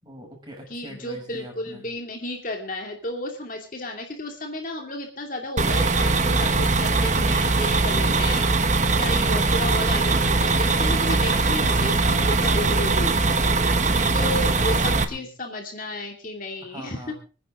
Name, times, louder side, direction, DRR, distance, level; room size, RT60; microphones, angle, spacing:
voice 1, 0.0-1.8 14.1-15.3 16.6-17.1, equal, 20° right, 1 dB, 6.3 m, -41 dB
voice 2, 0.7-13.1 14.1-17.1, left 1 dB, 45° left, 3 dB, 2.6 m, -33 dB
sound 1, 5.6-15.0, right 3 dB, 40° right, 1.2 m, -21 dB
26.0 x 10.0 x 3.7 m, 0.34 s
head